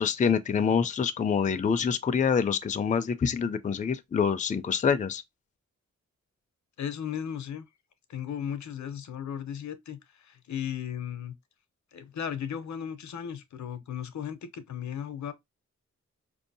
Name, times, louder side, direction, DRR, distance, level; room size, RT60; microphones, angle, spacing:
voice 1, 0.0-5.2, left 6 dB, 25° left, 0.4 m, -26 dB
voice 2, 6.8-7.6 8.1-11.4 11.9-15.3, left 9 dB, 75° left, 0.6 m, -36 dB
4.4 x 2.7 x 2.6 m
wide cardioid pair, 90°, 29 cm